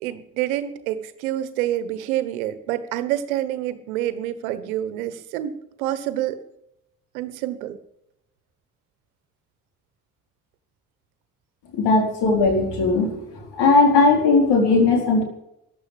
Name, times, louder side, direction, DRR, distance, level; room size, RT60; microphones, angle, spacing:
voice 1, 0.0-6.4 7.1-7.8, right 12 dB, 90° right, 12 dB, 1.3 m, -27 dB
voice 2, 11.8-13.2 13.6-15.2, left 3 dB, 75° left, 3 dB, 4.5 m, -17 dB
14.5 x 11.0 x 7.7 m, 0.81 s
hypercardioid pair, 50°, 41 cm